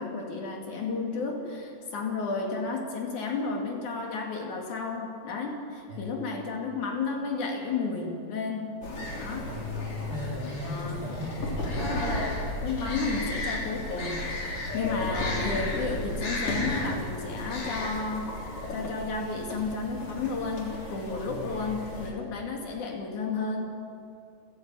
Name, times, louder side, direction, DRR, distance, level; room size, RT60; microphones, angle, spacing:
voice 1, 0.0-8.7 9.2-9.5 10.6-11.0 12.4-14.2 14.7-18.3 18.7-23.6, left 4 dB, 80° left, 1 dB, 4.1 m, -32 dB
sound 1, 8.8-22.1, left 1 dB, 50° left, 4.5 m, -33 dB
voice 2, 9.4-11.7 14.7-15.5 21.2-21.6, left 2 dB, 45° right, -5 dB, 8.1 m, -37 dB
29.0 x 10.5 x 9.0 m, 2.4 s
omnidirectional pair, 3.4 m